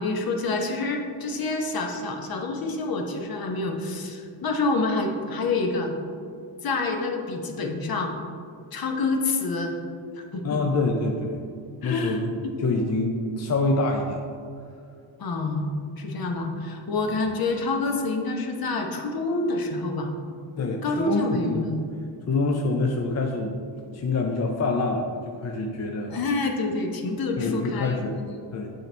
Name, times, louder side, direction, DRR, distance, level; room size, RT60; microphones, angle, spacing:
voice 1, 0.0-5.9 6.6-8.1 8.7-9.7 10.2-10.6 11.8-12.6 15.2-20.2 20.8-21.8 26.1-28.4, left 3 dB, 50° left, 3 dB, 0.9 m, -27 dB
voice 2, 10.4-11.4 11.8-12.3 12.6-14.2 17.1-17.2 20.6-21.7 22.3-23.6 23.9-26.2 27.4-28.2 28.5-28.7, left 3 dB, 35° left, 1 dB, 0.6 m, -26 dB
7.7 x 4.5 x 3.3 m, 2.3 s
cardioid pair, 80°, 45 cm